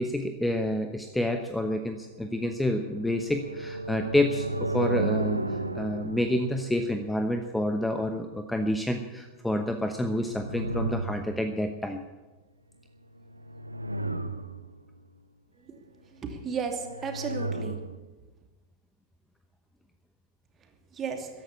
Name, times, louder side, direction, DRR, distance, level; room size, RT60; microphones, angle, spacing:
voice 1, 0.0-5.4 5.7-12.0, left 1 dB, 5° left, 6 dB, 1.0 m, -28 dB
sound 1, 2.2-7.9 9.9-11.7 13.3-14.8 16.7-18.0, right 2 dB, 85° right, 0.8 m, -34 dB
voice 2, 16.1-17.8 20.9-21.3, right 6 dB, 25° right, 4 dB, 2.6 m, -34 dB
14.5 x 11.0 x 8.4 m, 1.2 s
figure-of-eight pair, 90°, 0 cm